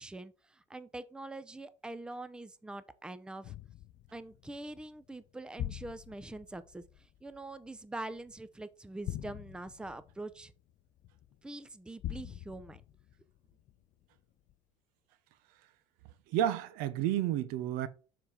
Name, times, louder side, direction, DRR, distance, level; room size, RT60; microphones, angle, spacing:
voice 1, 0.0-3.6 4.1-6.8 7.2-10.5 11.4-12.8, right 2 dB, 5° right, 0.6 m, -44 dB
sound 1, 3.4-8.5 9.0-11.4 12.0-14.0 14.5-14.6, left 12 dB, 55° left, 0.6 m, -44 dB
voice 2, 16.3-17.9, right 11 dB, 75° right, 0.7 m, -31 dB
6.8 x 3.8 x 4.3 m
supercardioid pair, 90°, 15 cm